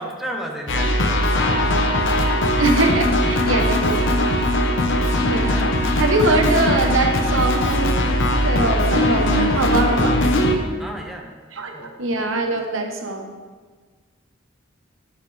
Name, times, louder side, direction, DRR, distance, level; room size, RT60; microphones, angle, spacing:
voice 1, 0.0-2.0 5.5-6.4 10.8-11.3 11.7-11.9, equal, ahead, 1 dB, 0.9 m, -34 dB
sound 1, 0.7-10.6, left 1 dB, 65° left, 0.9 m, -19 dB
voice 2, 2.6-4.2 5.2-5.6 6.0-10.2 11.5-13.4, right 2 dB, 80° right, 4 dB, 1.1 m, -22 dB
11.0 x 7.4 x 3.4 m, 1.4 s
head